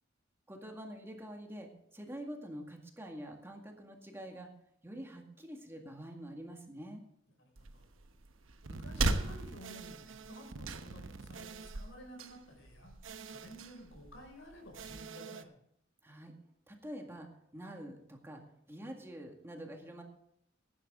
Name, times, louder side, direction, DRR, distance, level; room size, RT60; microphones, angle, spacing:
voice 1, 0.5-4.5 4.8-7.0 16.0-16.3 16.7-18.4 18.7-20.0, equal, 15° right, 2 dB, 1.9 m, -46 dB
voice 2, 7.4-7.8 8.6-12.9 13.3-15.5, equal, 70° left, 2 dB, 5.8 m, -53 dB
sound 1, 7.5-15.0, right 2 dB, 85° right, 1.1 m, -40 dB
sound 2, 8.6-11.9 13.0-13.7 14.7-15.4, right 4 dB, 70° right, 0.8 m, -47 dB
16.0 x 11.0 x 3.7 m, 0.73 s
head